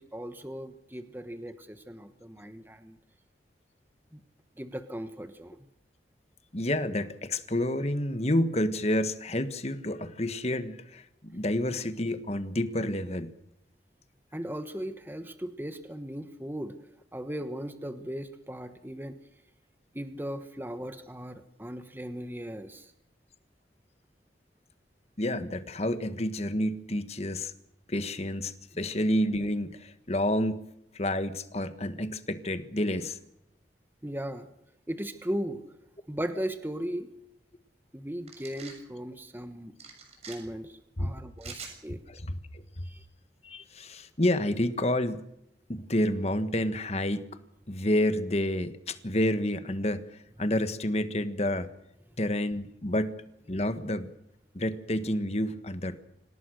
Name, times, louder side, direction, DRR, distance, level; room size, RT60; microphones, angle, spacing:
voice 1, 0.0-3.0 4.1-4.2 4.6-5.6 14.3-16.7 17.1-19.2 19.9-22.9 34.0-34.5 34.9-35.6 36.1-37.1 37.9-39.7 40.3-42.0 42.8-43.0, equal, 10° right, 9 dB, 1.1 m, -37 dB
voice 2, 6.5-13.3 25.2-27.5 27.9-30.6 30.9-33.2 41.0-41.1 42.1-42.6 43.4-45.2 45.7-47.2 47.7-50.0 50.4-51.7 52.2-53.1 53.5-54.1 54.5-56.0, left 1 dB, 35° left, 11 dB, 1.6 m, -29 dB
sound 1, 38.3-38.8 39.8-40.4 41.4-41.8, right 5 dB, 35° right, 6.5 m, -44 dB
26.5 x 18.5 x 6.5 m, 0.79 s
head